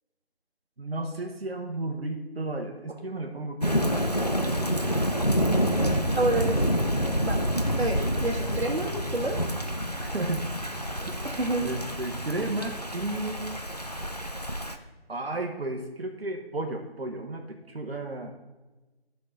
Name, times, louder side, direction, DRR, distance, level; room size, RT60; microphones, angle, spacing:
voice 1, 0.8-4.8 10.0-10.4 11.1-11.2 11.6-13.6 15.1-18.3, right 2 dB, 70° right, 2 dB, 1.2 m, -33 dB
Thunder / Rain, 3.6-14.8, equal, 40° left, 0.5 m, -28 dB
voice 2, 6.2-6.7 7.2-7.4 7.8-9.4 11.2-11.7, right 2 dB, 85° right, -4 dB, 1.5 m, -28 dB
12.5 x 5.9 x 3.8 m, 1.2 s
figure-of-eight pair, 175°, 32 cm